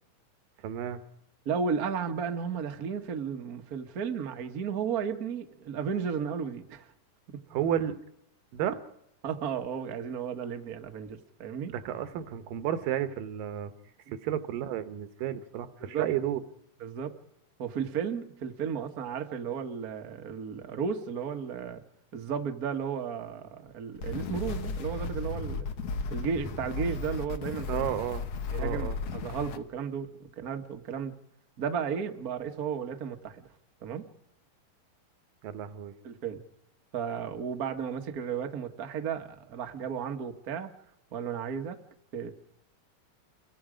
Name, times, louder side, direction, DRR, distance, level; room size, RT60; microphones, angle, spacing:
voice 1, 0.6-1.0 7.5-8.0 8.5-8.8 11.7-13.7 14.2-16.4 27.7-28.3 28.6-29.0 35.4-36.0, right 10 dB, 75° right, 11 dB, 2.7 m, -32 dB
voice 2, 1.4-6.9 7.3-7.4 9.2-11.7 14.1-14.2 15.8-16.1 16.8-17.1 17.6-21.8 22.1-25.7 26.1-27.9 28.5-31.2 31.6-33.5 33.8-34.1 36.0-36.4 36.9-40.8 41.1-41.8 42.1-42.3, right 7 dB, 55° right, 6 dB, 0.9 m, -34 dB
sound 1, 23.9-29.6, left 3 dB, 60° left, 1.8 m, -34 dB
29.0 x 22.5 x 5.1 m, 0.79 s
omnidirectional pair, 4.0 m